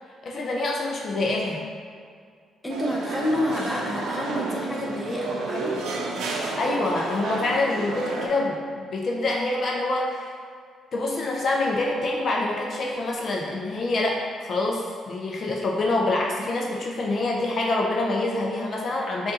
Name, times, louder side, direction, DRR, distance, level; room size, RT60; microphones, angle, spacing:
voice 1, 0.2-1.6 6.6-10.3 10.9-19.3, left 2 dB, 50° left, -2 dB, 0.6 m, -26 dB
voice 2, 2.6-5.8, left 1 dB, 10° left, -2 dB, 0.8 m, -28 dB
sound 1, 2.7-8.3, right 3 dB, 90° right, 0.6 m, -31 dB
5.3 x 2.6 x 3.9 m, 2.1 s
cardioid pair, 90°, 0 cm